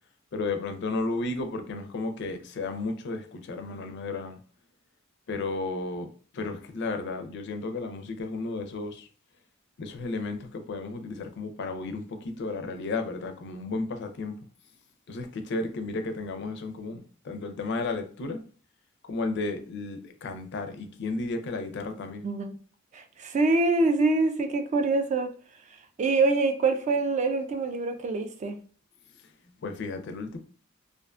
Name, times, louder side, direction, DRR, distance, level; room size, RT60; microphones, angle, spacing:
voice 1, 0.3-4.4 5.3-9.1 9.8-14.4 15.1-18.4 19.0-22.3 29.5-30.4, left 3 dB, 60° left, 0.4 m, -33 dB
voice 2, 22.2-22.6 22.9-25.3 26.0-28.6, right 3 dB, 35° right, 0.3 m, -25 dB
2.4 x 2.2 x 2.4 m
head